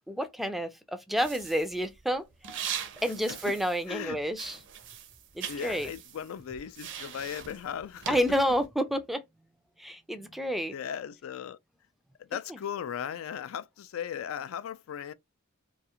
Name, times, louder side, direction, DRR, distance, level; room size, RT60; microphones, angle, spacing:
voice 1, 0.1-2.6 3.0-4.6 5.3-5.9 8.1-9.2 9.8-10.7 12.5-12.6, equal, ahead, 0.3 m, -30 dB
sound 1, 1.2-4.1 4.3-8.7, right 8 dB, 60° right, 0.5 m, -41 dB
voice 2, 3.9-4.2 5.5-8.2 10.7-11.6 12.2-15.1, left 8 dB, 80° left, 0.3 m, -37 dB
2.4 x 2.3 x 2.8 m
head